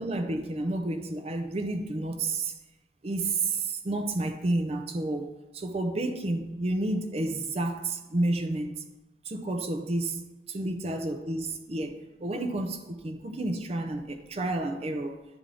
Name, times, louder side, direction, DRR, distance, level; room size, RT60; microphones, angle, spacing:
voice 1, 0.0-2.5 3.0-5.3 5.5-8.7 9.2-10.2 10.5-15.2, right 2 dB, 35° right, 6 dB, 0.5 m, -30 dB
10.5 x 3.5 x 3.7 m, 1.1 s
head